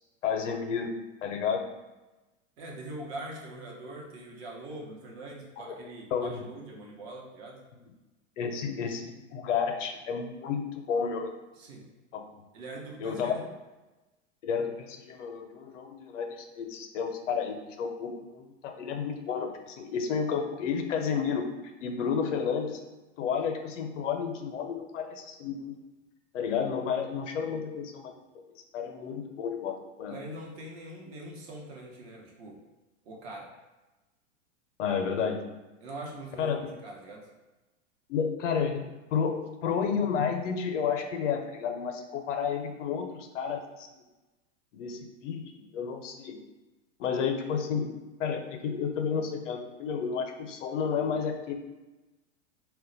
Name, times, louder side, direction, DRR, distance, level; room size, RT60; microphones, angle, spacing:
voice 1, 0.2-0.9 1.2-1.7 5.7-5.8 6.1-6.4 8.4-11.3 12.1-12.2 13.0-13.4 14.4-21.5 21.8-22.8 23.2-25.8 26.3-28.4 28.7-30.2 34.8-35.4 36.4-36.7 38.1-38.9 39.1-43.9 44.7-46.4 47.0-47.9 48.2-51.5, left 6 dB, 85° left, 5 dB, 0.5 m, -31 dB
voice 2, 2.6-7.6 11.5-11.9 12.5-13.5 27.5-27.6 30.1-32.6 33.0-33.5 35.8-37.3, right 1 dB, 60° right, -1 dB, 0.8 m, -43 dB
2.2 x 2.1 x 3.8 m, 1.1 s
hypercardioid pair, 115°, 36 cm